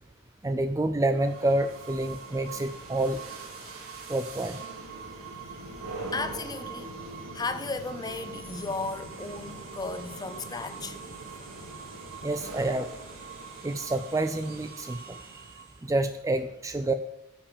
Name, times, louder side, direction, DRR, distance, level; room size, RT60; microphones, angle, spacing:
voice 1, 0.4-3.2 4.1-4.6 12.2-12.9 13.6-15.5 15.8-16.9, right 2 dB, 15° right, 0.4 m, -28 dB
sound 1, 1.1-15.9, right 3 dB, 90° right, 2.4 m, -42 dB
voice 2, 6.1-6.9 7.3-11.0, left 3 dB, 20° left, 0.7 m, -35 dB
9.8 x 5.5 x 6.8 m
head